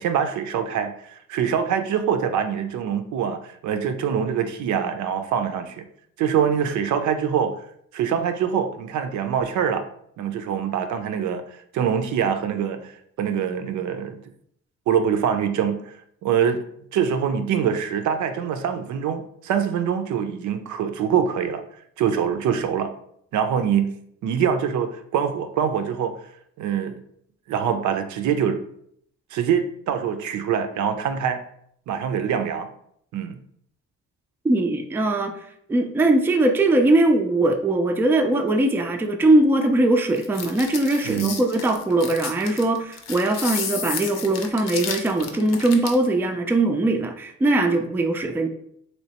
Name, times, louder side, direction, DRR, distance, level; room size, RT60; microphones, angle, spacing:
voice 1, 0.0-5.9 6.2-7.6 7.9-9.8 10.2-11.4 11.7-14.2 14.9-16.0 16.2-16.6 16.9-21.6 22.0-22.9 23.3-23.9 24.2-26.1 26.6-27.0 27.5-28.6 29.3-31.4 31.9-32.7 33.1-33.4 41.0-41.4, right 8 dB, 70° right, 8 dB, 0.5 m, -24 dB
voice 2, 34.4-35.4 35.7-48.5, right 2 dB, 10° right, 5 dB, 0.3 m, -21 dB
sound 1, 40.2-46.1, left 6 dB, 60° left, 0.7 m, -32 dB
3.2 x 2.9 x 2.8 m, 0.68 s
cardioid pair, 90°, 30 cm